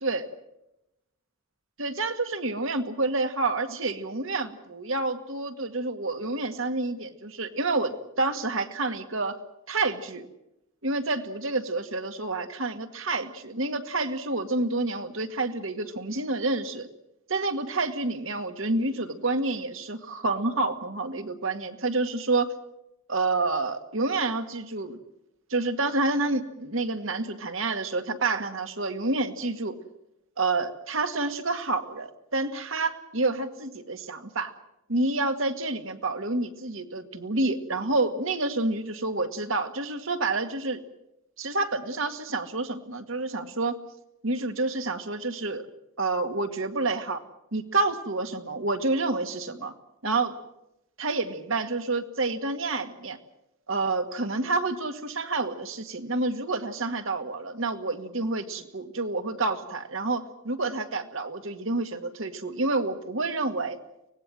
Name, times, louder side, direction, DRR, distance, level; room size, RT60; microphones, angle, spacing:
voice 1, 1.8-9.4 9.7-10.3 10.8-16.9 17.3-22.5 23.1-25.0 25.5-29.8 30.4-34.5 34.9-40.8 41.4-43.8 44.2-45.6 46.0-47.2 47.5-49.7 50.0-50.4 51.0-53.2 53.7-63.8, right 3 dB, 70° right, 8 dB, 1.9 m, -28 dB
24.5 x 19.0 x 7.7 m, 0.88 s
head